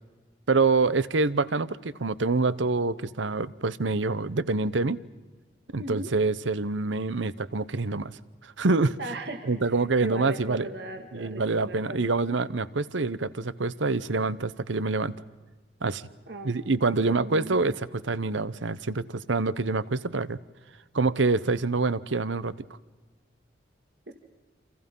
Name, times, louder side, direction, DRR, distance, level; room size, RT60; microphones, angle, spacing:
voice 1, 0.5-5.0 5.7-8.1 8.6-9.0 9.5-10.7 11.1-15.1 15.8-16.0 16.4-20.4 20.9-22.5, right 3 dB, 85° right, 17 dB, 0.9 m, -26 dB
voice 2, 5.8-6.1 9.0-12.1 16.3-16.6 16.9-17.6 24.1-24.2, right 2 dB, 60° right, 5 dB, 1.9 m, -38 dB
28.5 x 27.0 x 5.5 m, 1.3 s
head